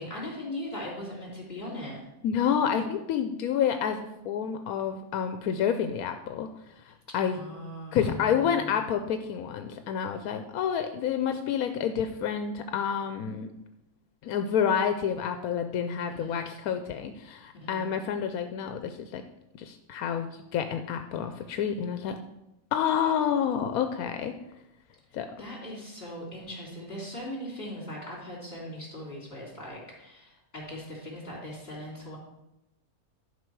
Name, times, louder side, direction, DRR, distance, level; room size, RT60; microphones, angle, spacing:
voice 1, 0.0-2.0 7.3-8.8 16.1-16.5 17.5-17.9 25.1-32.2, left 1 dB, 40° left, -3 dB, 3.3 m, -40 dB
voice 2, 2.2-6.5 7.1-7.4 7.9-13.5 14.2-19.2 19.6-22.2 22.7-24.3 25.1-25.3, left 8 dB, 85° left, 7 dB, 1.1 m, -29 dB
11.5 x 5.5 x 4.7 m, 0.88 s
omnidirectional pair, 1.5 m